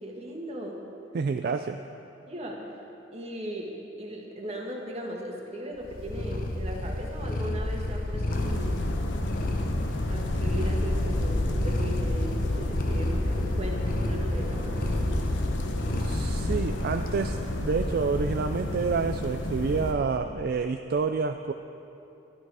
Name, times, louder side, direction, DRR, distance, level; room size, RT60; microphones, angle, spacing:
voice 1, 0.0-0.8 2.3-2.8 3.1-3.7 4.0-8.8 10.1-15.1, equal, 35° right, 0 dB, 1.5 m, -37 dB
voice 2, 1.1-1.8 16.0-21.5, right 5 dB, 55° right, 7 dB, 0.3 m, -28 dB
Purr, 5.8-17.1, left 1 dB, 50° left, 1.0 m, -30 dB
sound 1, 8.3-19.9, left 1 dB, 90° left, 0.9 m, -31 dB
12.0 x 10.5 x 4.8 m, 2.8 s
head